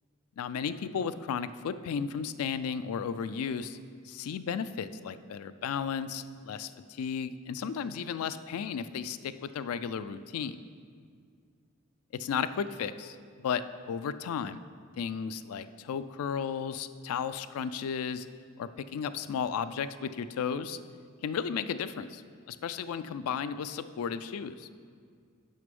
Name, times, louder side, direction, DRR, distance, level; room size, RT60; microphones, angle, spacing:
voice 1, 0.4-3.8 4.0-10.6 12.2-14.6 15.0-18.3 18.6-20.8 21.2-22.2 22.5-24.7, left 7 dB, 85° left, 13 dB, 0.3 m, -34 dB
6.5 x 5.9 x 5.2 m, 2.1 s
head